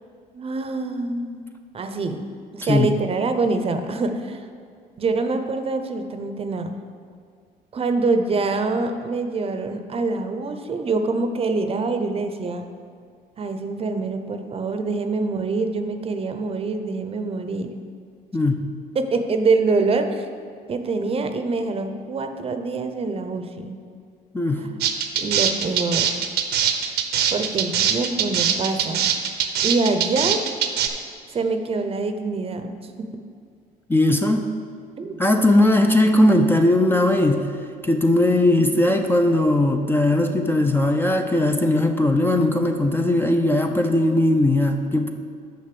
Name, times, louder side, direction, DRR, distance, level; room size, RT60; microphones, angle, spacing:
voice 1, 0.3-1.5 1.7-2.2 2.5-4.5 5.0-6.8 7.7-12.7 13.4-17.7 18.9-20.3 20.7-23.8 24.6-24.8 25.2-26.2 27.3-29.1 29.6-30.4 31.3-33.1 35.0-35.1 38.6-38.8, right 3 dB, 35° right, 7 dB, 0.7 m, -25 dB
voice 2, 18.3-18.7 24.3-24.7 33.9-34.5 35.2-37.5 37.8-45.1, left 1 dB, 15° left, 5 dB, 0.5 m, -19 dB
sound 1, 24.8-30.9, right 9 dB, 75° right, 0.7 m, -22 dB
6.5 x 5.3 x 6.8 m, 2.2 s
cardioid pair, 110°, 17 cm